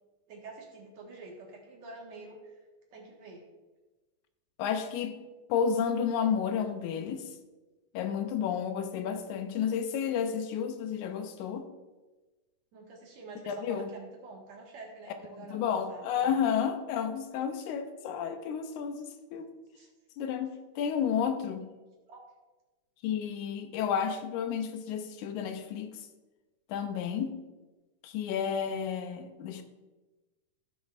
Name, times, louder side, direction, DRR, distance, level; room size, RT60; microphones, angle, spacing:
voice 1, 0.3-2.6 2.9-3.4 12.7-16.5 19.7-19.9 21.2-21.3 22.1-22.2, right 3 dB, 65° right, -2 dB, 2.6 m, -47 dB
voice 2, 4.6-5.2 5.5-7.3 7.9-11.7 13.5-13.9 15.4-19.6 20.2-21.6 23.0-25.9 26.7-27.4 28.0-29.6, left 7 dB, 80° left, 8 dB, 2.0 m, -31 dB
16.0 x 6.3 x 2.4 m, 1.2 s
omnidirectional pair, 3.5 m